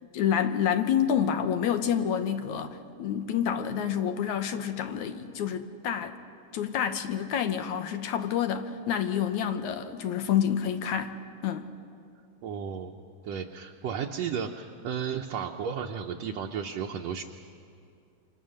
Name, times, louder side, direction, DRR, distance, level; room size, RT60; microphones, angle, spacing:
voice 1, 0.1-6.2 6.5-11.2 11.4-11.7, left 9 dB, 75° left, 8 dB, 2.4 m, -28 dB
voice 2, 12.4-12.9 13.2-17.2, right 7 dB, 70° right, 2 dB, 1.9 m, -33 dB
28.0 x 26.0 x 6.5 m, 2.5 s
omnidirectional pair, 3.5 m